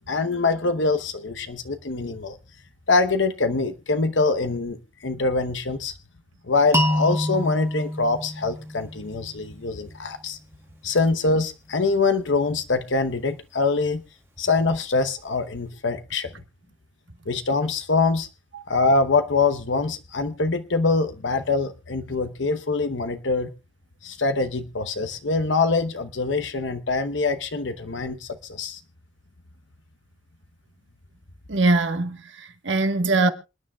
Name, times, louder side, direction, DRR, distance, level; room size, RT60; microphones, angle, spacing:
voice 1, 0.1-2.4 2.9-5.9 6.5-10.4 10.8-14.0 14.4-16.3 17.3-18.3 18.7-23.5 24.0-28.8, left 3 dB, 75° left, 0.9 m, -24 dB
sound 1, 6.7-9.6, equal, 15° right, 1.3 m, -26 dB
voice 2, 31.5-33.3, right 2 dB, 70° right, 1.3 m, -22 dB
27.5 x 9.9 x 2.3 m
head